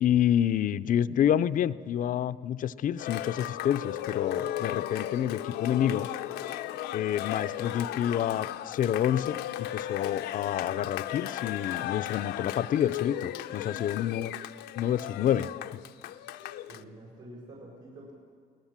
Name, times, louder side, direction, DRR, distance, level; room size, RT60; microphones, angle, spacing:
voice 1, 0.0-6.1 6.9-14.3 14.8-15.5, left 10 dB, 50° left, 15 dB, 0.6 m, -28 dB
Cheering, 3.0-16.8, left 12 dB, 85° left, 0.8 m, -36 dB
voice 2, 13.6-14.0 16.0-16.1 16.6-18.1, right 1 dB, 70° right, -3 dB, 6.9 m, -48 dB
22.5 x 18.0 x 7.4 m, 2.2 s
cardioid pair, 110°, 17 cm